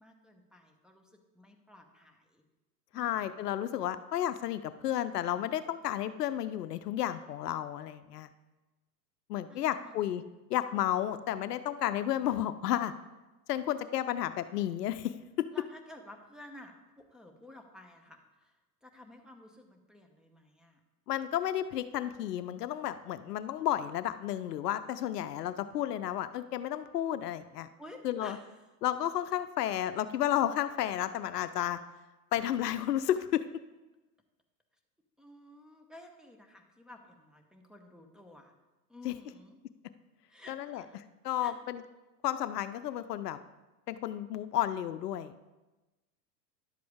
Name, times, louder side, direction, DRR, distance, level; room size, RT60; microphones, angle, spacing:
voice 1, 0.0-2.4 2.9-3.4 9.5-10.0 15.5-20.8 27.8-28.5 35.2-38.5 38.9-39.6 40.3-41.0 41.4-41.5, left 1 dB, ahead, 1 dB, 0.8 m, -53 dB
voice 2, 2.9-8.3 9.3-10.2 10.5-12.9 13.5-15.5 21.1-27.7 28.0-28.4 28.8-31.8 32.3-33.4 39.0-39.1 40.5-40.8 41.2-41.8 42.2-43.4 43.9-45.3, left 11 dB, 75° left, 12 dB, 0.6 m, -32 dB
11.0 x 7.6 x 3.5 m, 1.1 s
hypercardioid pair, 95°, 48 cm